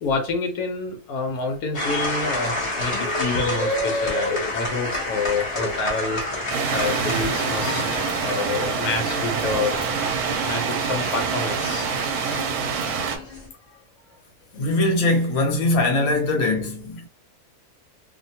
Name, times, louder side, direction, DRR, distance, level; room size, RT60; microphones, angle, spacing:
voice 1, 0.0-6.2 6.7-7.8 8.1-10.0 10.4-11.9, left 3 dB, 90° left, 1.1 m, -28 dB
sound 1, 1.7-13.5, left 1 dB, 25° left, 0.8 m, -29 dB
sound 2, 6.5-13.2, right 6 dB, 80° right, 1.1 m, -26 dB
voice 2, 14.5-17.1, left 2 dB, 65° left, 1.1 m, -21 dB
2.7 x 2.2 x 2.7 m
omnidirectional pair, 1.6 m